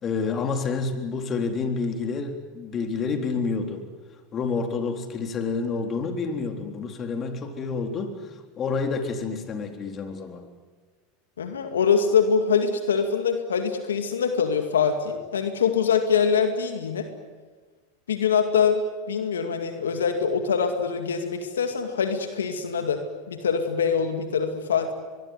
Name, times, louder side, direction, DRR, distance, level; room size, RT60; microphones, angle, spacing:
voice 1, 0.0-3.9 4.3-10.5, left 4 dB, 35° left, 6 dB, 3.8 m, -29 dB
voice 2, 11.4-17.1 18.1-24.9, left 6 dB, 85° left, 7 dB, 2.2 m, -24 dB
24.5 x 21.5 x 9.6 m, 1.4 s
hypercardioid pair, 95°, 0 cm